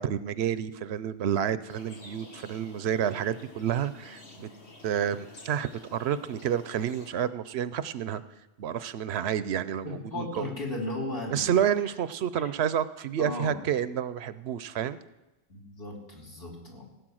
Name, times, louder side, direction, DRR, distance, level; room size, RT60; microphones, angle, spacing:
voice 1, 0.0-4.5 4.8-8.2 8.6-10.5 11.3-15.0, right 9 dB, 75° right, 15 dB, 0.9 m, -29 dB
sound 1, 1.7-7.1, left 2 dB, 80° left, 2.0 m, -50 dB
voice 2, 9.8-11.5 12.4-12.5 13.2-13.6 15.5-16.8, left 2 dB, 60° left, -2 dB, 3.1 m, -36 dB
17.0 x 8.2 x 6.3 m, 1.0 s
omnidirectional pair, 1.1 m